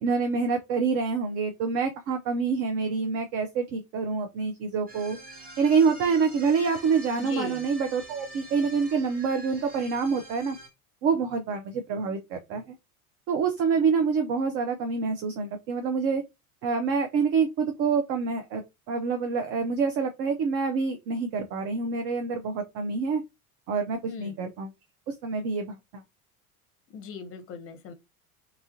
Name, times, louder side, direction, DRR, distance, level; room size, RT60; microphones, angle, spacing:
voice 1, 0.0-5.2 5.6-10.6 11.0-12.7 13.3-16.2 16.6-18.6 18.9-23.2 23.7-24.7 25.1-25.8, right 5 dB, 35° right, 0.4 m, -26 dB
sound 1, 4.9-10.7, right 1 dB, 20° right, 0.9 m, -46 dB
voice 2, 7.2-7.7 24.1-24.4 26.9-27.9, left 6 dB, 30° left, 0.7 m, -38 dB
3.0 x 2.4 x 2.6 m
figure-of-eight pair, 80°, 44 cm